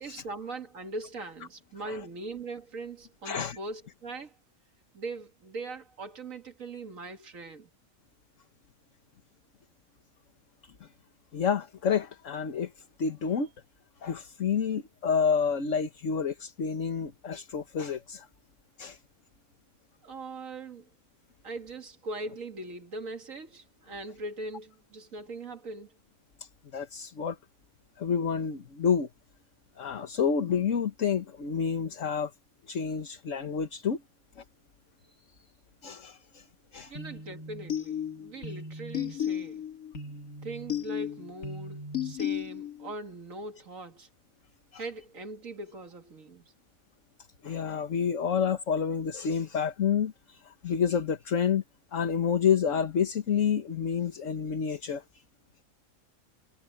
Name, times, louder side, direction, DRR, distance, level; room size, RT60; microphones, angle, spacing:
voice 1, 0.0-4.3 4.9-7.7 20.0-20.9 21.4-25.9 36.9-39.7 40.4-44.1 44.8-46.5, right 2 dB, 65° right, 2.3 m, -40 dB
voice 2, 3.2-3.5 10.8-10.9 11.3-12.7 13.0-13.5 14.0-18.3 18.8-19.0 26.4-27.4 28.0-29.1 29.8-32.3 32.7-34.0 34.4-34.5 35.8-36.4 36.7-36.9 44.7-44.8 47.4-51.6 51.9-55.0, left 7 dB, 60° left, 1.7 m, -29 dB
sound 1, 37.0-42.9, left 8 dB, 80° left, 2.5 m, -35 dB
omnidirectional pair, 1.5 m